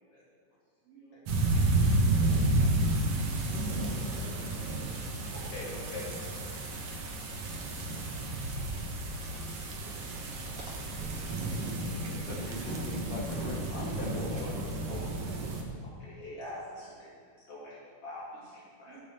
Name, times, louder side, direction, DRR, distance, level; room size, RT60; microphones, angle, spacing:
voice 1, 0.9-2.3 2.7-4.0 4.3-5.3 6.5-7.0 7.3-8.1 10.0-12.3 16.8-16.9 18.9-19.0, right 2 dB, 45° right, -7 dB, 2.2 m, -57 dB
sound 1, 1.3-15.6, right 2 dB, 75° right, 1.4 m, -31 dB
voice 2, 2.2-2.7 4.2-4.3 4.6-4.7 5.3-6.4 14.1-14.5 14.9-15.5 16.0-17.1 17.5-19.0, left 1 dB, 45° left, -6 dB, 2.5 m, -44 dB
voice 3, 12.1-14.7, left 2 dB, 70° left, -3 dB, 1.6 m, -40 dB
12.5 x 5.5 x 6.6 m, 2.1 s
omnidirectional pair, 4.6 m